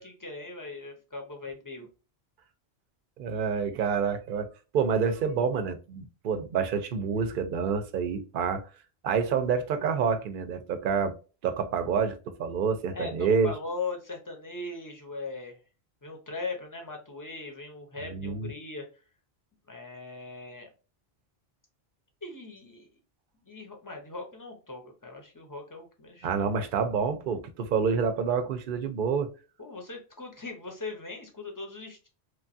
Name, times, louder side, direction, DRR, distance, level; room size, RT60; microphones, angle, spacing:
voice 1, 0.0-1.9 12.9-15.6 16.0-18.8 19.7-20.7 22.2-22.9 23.4-26.5 29.6-32.1, left 3 dB, 20° left, 0.7 m, -39 dB
voice 2, 3.2-4.5 4.7-8.7 9.0-11.1 11.4-13.5 18.0-18.5 26.2-29.3, right 6 dB, 60° right, 0.7 m, -28 dB
3.1 x 2.3 x 2.5 m
omnidirectional pair, 1.1 m